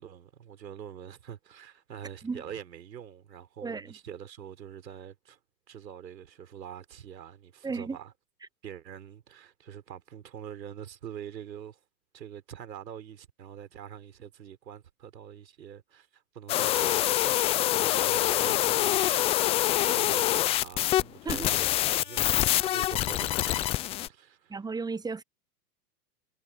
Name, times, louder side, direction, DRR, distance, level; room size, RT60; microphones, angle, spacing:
voice 1, 0.0-5.4 5.7-8.1 8.6-11.8 12.1-19.1 19.8-24.6, right 9 dB, 85° right, 4.1 m, -45 dB
voice 2, 3.6-3.9 7.6-8.0 19.8-19.9 21.2-21.5 24.5-25.2, right 4 dB, 10° right, 0.9 m, -34 dB
sound 1, 16.5-21.0 21.3-24.1, left 14 dB, 15° left, 0.3 m, -25 dB
hypercardioid pair, 105°, 49 cm